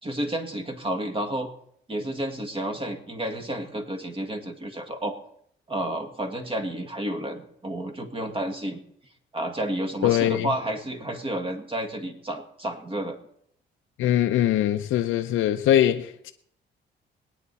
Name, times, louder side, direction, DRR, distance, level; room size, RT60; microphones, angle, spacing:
voice 1, 0.0-1.5 1.9-5.2 5.7-8.8 9.3-13.2, right 1 dB, 25° right, 1.9 m, -31 dB
voice 2, 10.0-10.5 14.0-16.3, left 12 dB, 85° left, 0.7 m, -22 dB
21.5 x 9.5 x 4.2 m
cardioid pair, 90°, 20 cm